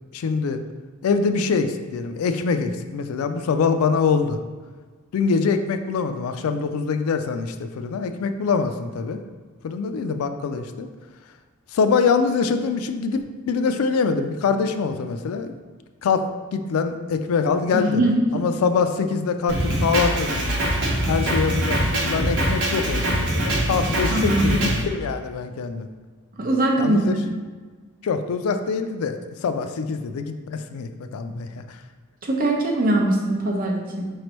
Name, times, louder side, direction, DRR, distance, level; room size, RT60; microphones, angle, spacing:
voice 1, 0.1-0.6 1.0-4.4 5.1-9.2 9.6-10.9 11.7-15.5 16.0-16.2 16.5-18.0 18.3-20.5 21.1-25.9 26.8-27.2 28.0-31.6, left 5 dB, 75° left, 8 dB, 0.3 m, -24 dB
voice 2, 17.7-18.5 24.1-24.7 26.3-27.1 32.2-34.0, right 1 dB, 40° right, -1 dB, 0.7 m, -22 dB
Drum kit, 19.5-24.8, right 1 dB, 60° right, 1.0 m, -23 dB
5.0 x 3.2 x 3.0 m, 1.4 s
head